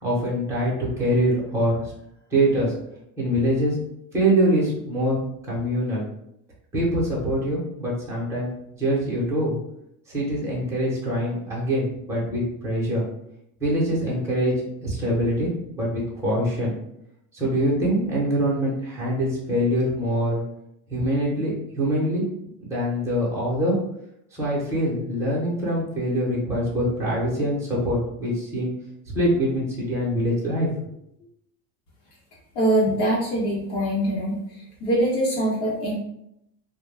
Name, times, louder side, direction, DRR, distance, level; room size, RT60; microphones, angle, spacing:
voice 1, 0.0-1.9 2.3-2.7 3.2-3.8 4.1-5.2 5.5-6.1 6.7-9.5 10.1-13.0 13.6-14.5 14.8-16.7 17.3-20.4 20.9-22.2 22.6-23.8 24.3-28.7 29.1-30.7, equal, 5° right, -6 dB, 0.7 m, -24 dB
voice 2, 32.5-36.0, right 1 dB, 70° left, -5 dB, 0.9 m, -23 dB
2.2 x 2.2 x 3.2 m, 0.78 s
cardioid pair, 160°, 38 cm